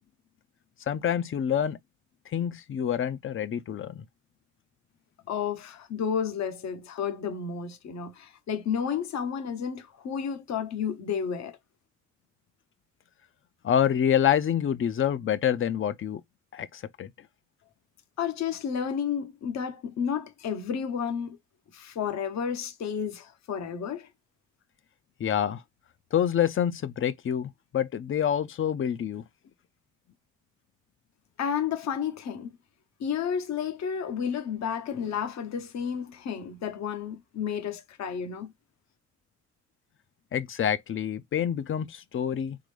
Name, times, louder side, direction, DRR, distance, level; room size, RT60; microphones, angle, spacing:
voice 1, 0.9-1.8 2.3-4.0 13.6-16.2 16.5-17.1 25.2-25.6 26.1-29.2 40.3-42.6, left 9 dB, 45° left, 0.6 m, -27 dB
voice 2, 5.3-11.6 18.2-21.4 21.7-24.1 31.4-32.5 33.0-38.5, left 7 dB, 65° left, 1.0 m, -31 dB
4.1 x 3.9 x 3.3 m
cardioid pair, 90°, 30 cm